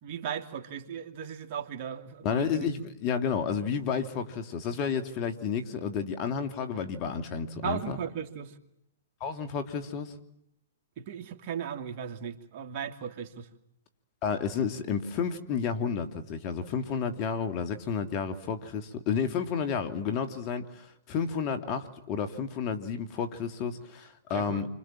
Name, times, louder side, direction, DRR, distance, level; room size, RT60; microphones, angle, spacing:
voice 1, 0.0-2.7 7.6-8.5 11.0-13.5 24.3-24.7, right 8 dB, 45° right, 6 dB, 2.5 m, -37 dB
voice 2, 2.2-8.0 9.2-10.1 14.2-24.7, left 6 dB, 35° left, 8 dB, 2.7 m, -31 dB
29.0 x 25.5 x 7.5 m, 0.79 s
hypercardioid pair, 125°, 0 cm